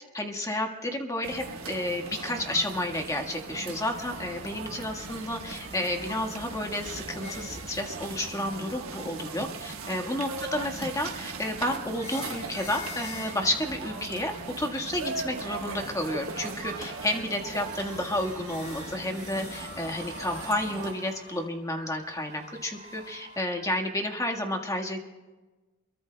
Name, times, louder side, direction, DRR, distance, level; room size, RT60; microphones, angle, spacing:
voice 1, 0.1-14.3 14.6-25.0, left 1 dB, 15° left, 3 dB, 1.5 m, -31 dB
sound 1, 1.2-20.9, right 4 dB, 75° right, 1.3 m, -39 dB
sound 2, 5.0-9.1 10.5-14.2 15.8-23.5, left 3 dB, 35° left, 4.2 m, -47 dB
28.0 x 22.5 x 2.2 m, 1.2 s
head